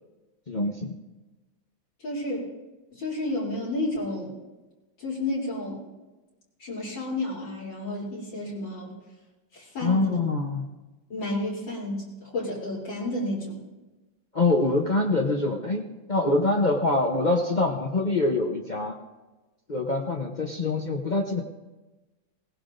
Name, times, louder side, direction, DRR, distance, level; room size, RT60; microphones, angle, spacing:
voice 1, 0.5-0.9 9.8-10.7 14.3-19.0 19.7-21.4, left 2 dB, 45° left, 0 dB, 0.5 m, -25 dB
voice 2, 2.0-2.5 2.9-4.4 5.0-5.8 6.6-8.9 9.5-10.1 11.1-13.6, left 1 dB, 80° left, -6 dB, 4.0 m, -31 dB
19.5 x 18.0 x 2.6 m, 1.1 s
omnidirectional pair, 2.1 m